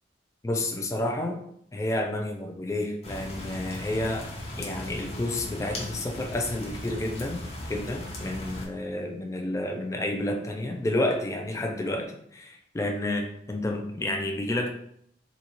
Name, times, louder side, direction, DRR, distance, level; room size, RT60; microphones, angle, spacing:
voice 1, 0.4-1.4 1.7-4.3 4.6-14.7, left 1 dB, 15° left, 3 dB, 0.3 m, -30 dB
sound 1, 3.0-8.7, left 1 dB, 35° left, 0.7 m, -37 dB
3.9 x 2.3 x 2.9 m, 0.69 s
head